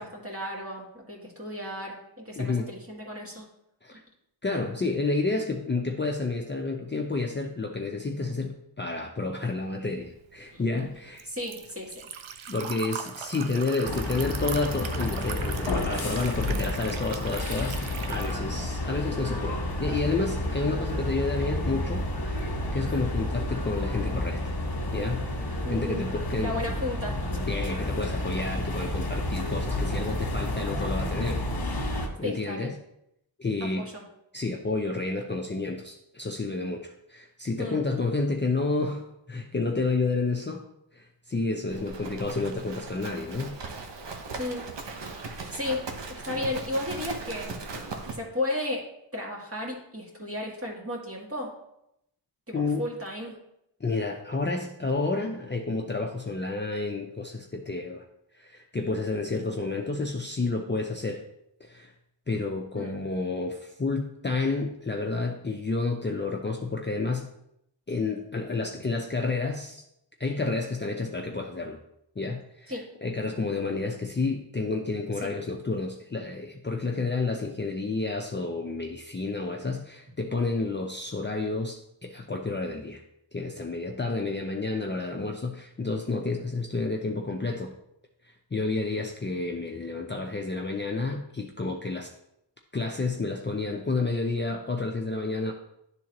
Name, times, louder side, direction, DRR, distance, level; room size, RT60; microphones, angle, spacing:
voice 1, 0.0-3.5 3.9-4.0 10.5-10.6 11.3-12.1 25.6-26.1 26.4-27.2 32.2-32.7 33.6-34.0 37.6-37.8 44.4-44.6 45.2-45.8 46.1-47.5 48.1-48.9 49.1-51.5 52.5-53.3 62.7-63.0 72.7-72.8 75.2-75.3, left 1 dB, 30° right, -2 dB, 2.0 m, -34 dB
voice 2, 2.4-2.7 3.8-4.0 4.4-11.3 12.5-17.8 18.1-22.4 22.7-24.6 24.9-25.3 25.7-26.6 27.5-31.4 31.8-32.8 33.4-33.9 34.3-40.6 40.9-43.6 45.3-45.4 52.5-52.9 53.8-58.0 58.3-61.2 61.6-61.9 62.3-67.3 67.9-69.8 70.2-71.8 72.2-83.0 83.3-87.7 88.2-92.1 92.7-95.5, left 3 dB, 25° left, 1 dB, 0.6 m, -30 dB
Liquid, 10.1-18.4, right 7 dB, 90° right, 0.6 m, -39 dB
sound 1, 13.8-32.1, left 1 dB, 60° left, 1.4 m, -30 dB
Livestock farm animals working animals, 41.7-48.2, right 4 dB, 65° right, 0.9 m, -38 dB
11.0 x 3.7 x 2.9 m, 0.80 s
wide cardioid pair, 70°, 46 cm